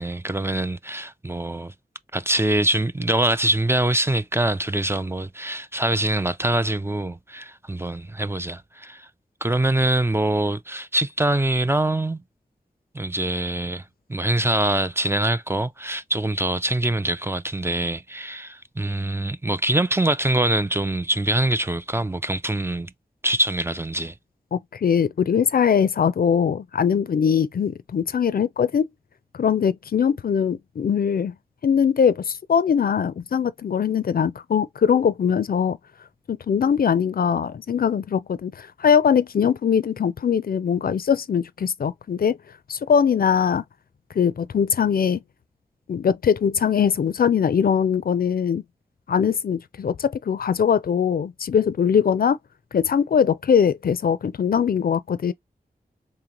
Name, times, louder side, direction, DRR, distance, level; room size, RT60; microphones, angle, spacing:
voice 1, 0.0-1.7 2.1-9.1 9.4-12.2 12.9-13.8 14.1-22.9 23.2-24.1, right 1 dB, 15° right, 0.3 m, -24 dB
voice 2, 24.5-28.9 29.4-31.3 31.6-35.8 36.3-42.4 42.7-43.6 44.2-45.2 45.9-48.6 49.1-52.4 52.7-55.3, left 7 dB, 70° left, 0.4 m, -21 dB
3.8 x 3.1 x 2.9 m
cardioid pair, 50°, 16 cm